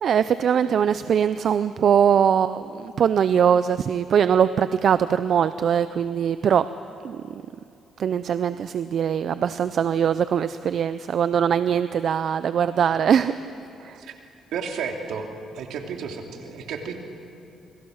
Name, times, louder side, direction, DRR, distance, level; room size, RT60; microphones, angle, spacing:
voice 1, 0.0-6.7 7.0-7.4 8.0-13.3 13.8-14.0, right 8 dB, 60° right, 13 dB, 0.6 m, -21 dB
voice 2, 14.5-15.3 15.5-16.9, right 6 dB, 80° right, 3 dB, 2.7 m, -32 dB
27.5 x 22.5 x 6.5 m, 2.6 s
cardioid pair, 90°, 0 cm